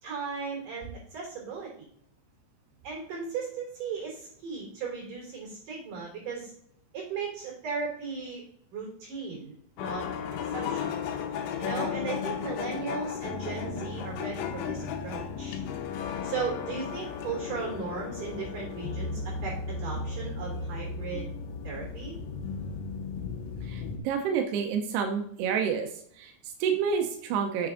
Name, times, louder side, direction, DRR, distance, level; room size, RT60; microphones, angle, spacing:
voice 1, 0.0-1.9 2.8-6.5 6.9-8.4 8.7-10.0 10.5-11.0 11.6-15.6 16.2-19.5 19.8-21.3 21.6-22.2, right 5 dB, 45° right, -2 dB, 4.6 m, -36 dB
sound 1, 9.8-24.0, left 6 dB, 80° left, 3.4 m, -35 dB
voice 2, 23.7-25.9 26.2-27.7, right 7 dB, 85° right, 4 dB, 2.3 m, -29 dB
7.8 x 6.7 x 3.8 m, 0.67 s
omnidirectional pair, 5.8 m